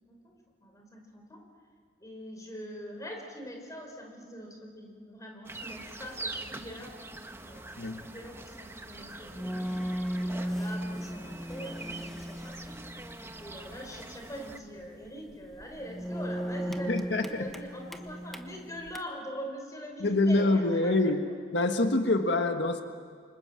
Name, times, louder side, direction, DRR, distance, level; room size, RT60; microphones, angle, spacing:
voice 1, 0.1-1.4 2.0-6.9 7.4-9.6 10.2-12.8 13.4-16.9 17.2-21.0, equal, 20° left, 1 dB, 4.8 m, -43 dB
sound 1, 5.5-14.6, right 2 dB, 15° right, 1.2 m, -44 dB
sound 2, 9.0-19.0, equal, ahead, 1.3 m, -37 dB
voice 2, 16.9-17.4 20.0-21.2 21.5-22.8, left 2 dB, 70° left, 6 dB, 1.5 m, -25 dB
29.0 x 25.5 x 7.5 m, 2.1 s
head